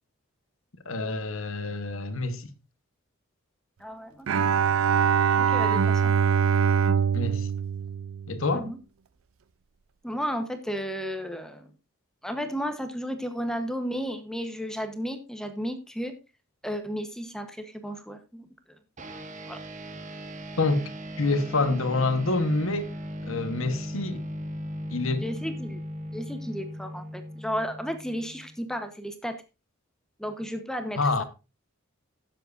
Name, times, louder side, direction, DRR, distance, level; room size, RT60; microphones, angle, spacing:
voice 1, 0.8-2.5 7.1-7.5 8.3-8.7 20.6-20.9 21.2-22.9 23.2-24.2 24.9-25.3 31.0-31.2, left 3 dB, 65° left, 1.3 m, -27 dB
voice 2, 3.8-4.5 5.4-6.1 8.5-8.8 10.0-11.7 12.2-16.1 16.6-18.4 19.5-19.6 25.2-25.8 26.1-29.4 30.2-31.2, equal, 5° left, 1.1 m, -33 dB
Bowed string instrument, 4.3-8.7, right 7 dB, 70° right, 0.5 m, -23 dB
sound 1, 19.0-28.7, equal, 35° right, 1.3 m, -38 dB
16.5 x 7.6 x 2.6 m
head